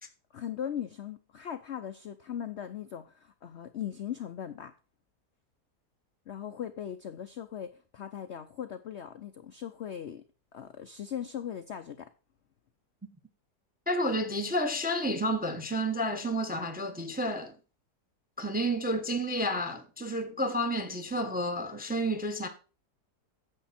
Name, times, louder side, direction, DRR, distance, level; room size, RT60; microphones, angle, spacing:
voice 1, 0.3-4.7 6.3-10.2 10.5-12.1, left 9 dB, 65° left, 0.7 m, -39 dB
voice 2, 13.9-17.5 18.4-22.5, equal, 10° right, 0.6 m, -30 dB
9.9 x 7.1 x 4.2 m
omnidirectional pair, 1.8 m